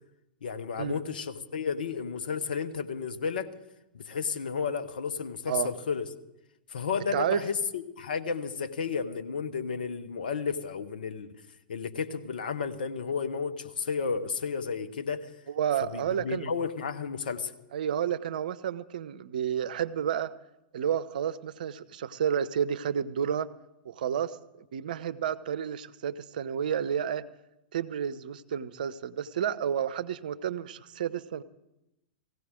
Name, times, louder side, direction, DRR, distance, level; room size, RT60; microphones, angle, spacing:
voice 1, 0.4-3.5 3.9-6.0 6.7-11.4 11.7-15.3 15.8-17.5, left 5 dB, 70° left, 8 dB, 1.1 m, -32 dB
voice 2, 7.1-7.4 15.5-16.5 17.7-20.3 20.7-23.5 23.8-27.3 27.7-31.4, right 8 dB, 65° right, 15 dB, 0.7 m, -31 dB
18.5 x 16.0 x 3.8 m, 0.92 s
figure-of-eight pair, 105°, 5 cm